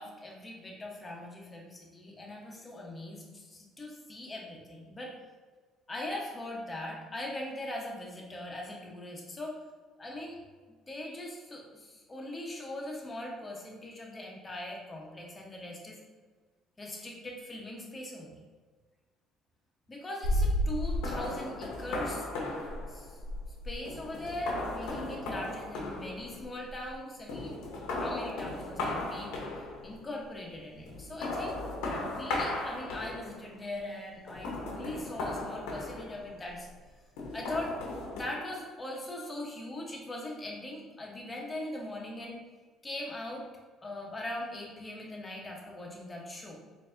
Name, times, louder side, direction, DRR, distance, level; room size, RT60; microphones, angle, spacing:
voice 1, 0.0-5.1 5.9-9.6 10.0-10.4 10.9-16.0 16.8-18.3 19.9-22.3 22.9-23.2 23.6-27.6 27.9-31.6 32.0-36.7 37.3-37.7 38.1-42.4 42.8-43.5 43.8-46.6, left 1 dB, 20° left, -1 dB, 1.0 m, -40 dB
sound 1, 20.2-27.0 27.3-30.0 30.9-33.5 34.3-36.5 37.2-38.2, left 1 dB, 85° left, 0.8 m, -35 dB
4.5 x 2.7 x 2.6 m, 1.4 s
cardioid pair, 95°, 0 cm